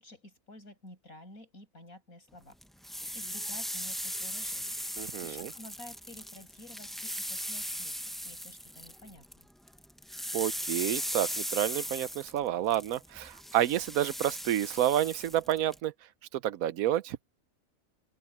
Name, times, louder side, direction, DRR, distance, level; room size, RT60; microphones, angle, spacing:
voice 1, 0.0-2.6 3.0-9.2, left 1 dB, 90° left, 8.4 m, -51 dB
sound 1, 2.6-9.4 9.7-15.8, equal, ahead, 0.4 m, -38 dB
voice 2, 5.0-5.5 10.3-15.9 16.3-17.2, right 12 dB, 85° right, 1.1 m, -29 dB
open air
omnidirectional pair, 1.4 m